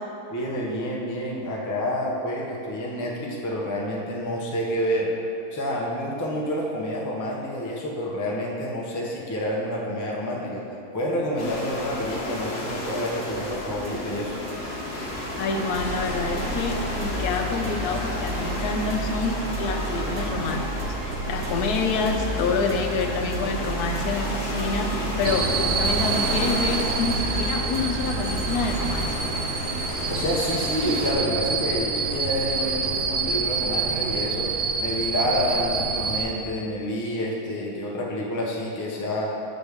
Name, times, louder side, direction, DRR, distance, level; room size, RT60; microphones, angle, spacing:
voice 1, 0.3-5.1 5.5-10.6 10.9-14.3 30.1-34.5 34.8-39.3, equal, 25° left, -3 dB, 0.4 m, -28 dB
sound 1, 11.4-31.1, left 1 dB, 45° left, 1.0 m, -33 dB
sound 2, 13.1-29.0, right 1 dB, 60° right, 1.2 m, -32 dB
voice 2, 15.4-20.9 21.3-29.3, left 4 dB, 80° left, 4 dB, 1.1 m, -27 dB
sound 3, 25.2-36.2, right 5 dB, 80° right, 0.4 m, -27 dB
8.0 x 5.2 x 3.5 m, 2.9 s
omnidirectional pair, 1.7 m